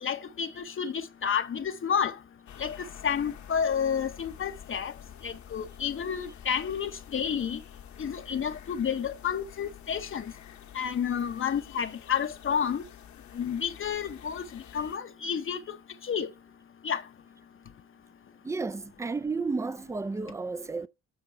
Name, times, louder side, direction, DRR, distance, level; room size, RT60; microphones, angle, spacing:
voice 1, 0.0-2.2 2.6-4.9 5.2-7.6 8.0-10.3 10.7-12.8 13.3-15.8 16.0-16.3 16.8-17.0, left 7 dB, 45° left, 0.8 m, -30 dB
sound 1, 2.5-15.0, left 9 dB, 70° left, 1.2 m, -49 dB
voice 2, 18.4-20.9, right 4 dB, 10° right, 0.4 m, -32 dB
7.3 x 7.2 x 4.5 m
cardioid pair, 90°, 30 cm